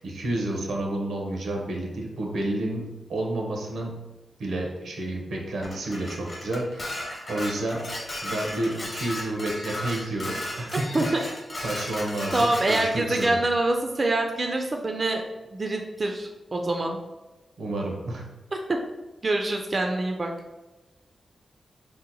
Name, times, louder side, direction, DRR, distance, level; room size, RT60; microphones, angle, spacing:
voice 1, 0.0-4.0 4.4-6.9 7.3-10.7 11.2-11.3 11.6-13.4 17.6-18.2, right 1 dB, 85° right, 0 dB, 0.7 m, -30 dB
Dishes pots and pans, 5.6-13.3, left 1 dB, 40° left, 0.9 m, -35 dB
voice 2, 10.9-11.3 12.3-15.2 15.5-17.0 18.7-18.8 19.2-20.3, right 2 dB, 35° right, 3 dB, 0.3 m, -25 dB
2.8 x 2.1 x 3.9 m, 1.1 s
cardioid pair, 85°, 0 cm